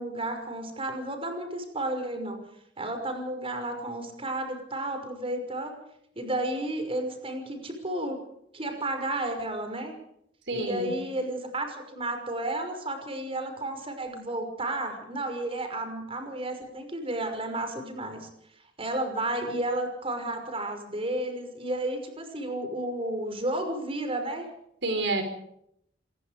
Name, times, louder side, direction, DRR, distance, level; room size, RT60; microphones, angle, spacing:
voice 1, 0.0-2.4 2.8-5.8 6.2-8.2 8.5-9.9 10.5-18.3 18.8-24.5, right 1 dB, 30° right, 6 dB, 5.8 m, -32 dB
voice 2, 10.5-10.9 24.8-25.2, right 2 dB, 80° right, 8 dB, 4.6 m, -28 dB
27.0 x 22.0 x 5.1 m, 0.74 s
head